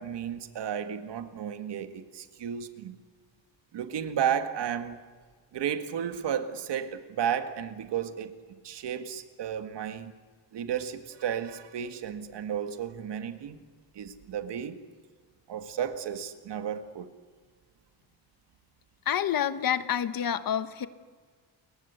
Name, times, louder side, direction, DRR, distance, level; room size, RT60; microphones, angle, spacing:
voice 1, 0.0-3.0 3.7-5.0 5.5-10.1 10.5-13.6 13.9-14.8 15.5-17.1, right 8 dB, 65° right, 2.0 m, -33 dB
voice 2, 19.1-20.9, left 9 dB, 50° left, 1.2 m, -28 dB
29.0 x 23.0 x 8.2 m
cardioid pair, 170°, 45 cm